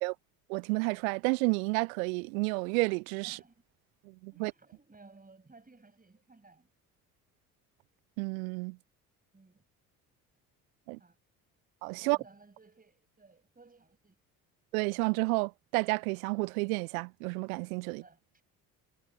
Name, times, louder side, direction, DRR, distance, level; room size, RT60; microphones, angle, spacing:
voice 1, 0.5-3.4 4.1-4.5 8.2-8.8 10.9-11.0 11.8-12.2 14.7-18.0, right 30 dB, 65° right, 0.8 m, -31 dB
voice 2, 3.2-3.5 4.3-6.7 9.3-9.6 11.0-11.2 12.0-14.2 17.9-18.4, right 3 dB, 20° right, 7.4 m, -58 dB
figure-of-eight pair, 50°, 45 cm